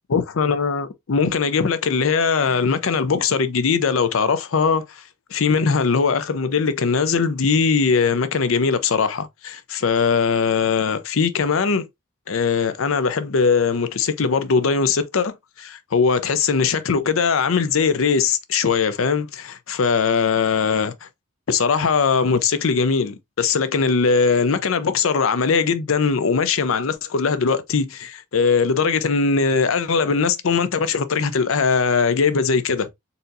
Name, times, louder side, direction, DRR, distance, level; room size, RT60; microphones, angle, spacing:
voice 1, 0.1-5.0 5.3-11.8 12.3-21.1 21.5-32.9, left 5 dB, 70° left, 0.5 m, -20 dB
4.2 x 2.6 x 2.5 m
head